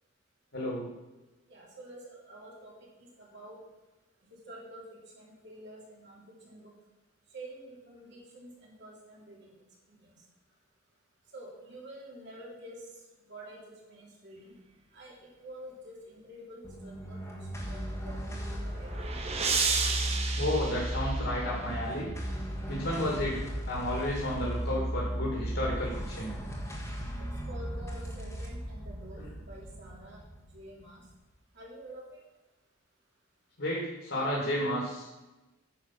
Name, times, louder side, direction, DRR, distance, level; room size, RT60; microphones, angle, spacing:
voice 1, 0.5-0.9 20.4-22.1 22.7-26.3 29.2-29.3 33.6-35.1, left 1 dB, 60° left, -4 dB, 2.5 m, -32 dB
voice 2, 1.5-2.7 3.2-3.6 4.3-4.8 5.1-6.7 7.3-9.5 11.3-12.9 13.3-14.5 14.9-15.1 15.4-17.2 17.5-19.0 27.2-30.2 30.5-31.0 31.6-32.0, right 1 dB, 55° right, -4 dB, 3.0 m, -48 dB
sound 1, 16.6-31.2, equal, 15° left, 1.5 m, -36 dB
sound 2, 18.3-21.7, right 4 dB, 30° right, 1.0 m, -32 dB
9.8 x 5.8 x 5.8 m, 1.1 s
head